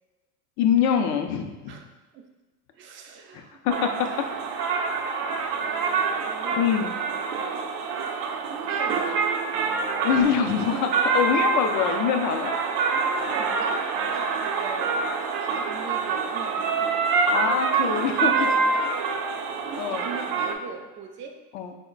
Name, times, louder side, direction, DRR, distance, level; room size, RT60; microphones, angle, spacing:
voice 1, 0.6-1.7 3.3-3.7 6.5-6.9 10.0-10.9 11.1-12.6 17.3-18.5 19.7-20.1 21.5-21.7, left 8 dB, 40° left, 6 dB, 0.4 m, -24 dB
voice 2, 2.7-4.2 5.5-6.7 7.5-7.7 8.5-9.2 10.6-10.9 12.9-13.8 14.1-14.9 15.2-16.9 17.8-18.9 19.6-21.3, right 6 dB, 30° right, 4 dB, 0.3 m, -39 dB
sound 1, 3.7-20.5, right 5 dB, 75° right, 0.6 m, -26 dB
4.2 x 2.1 x 3.7 m, 1.2 s
hypercardioid pair, 95°, 48 cm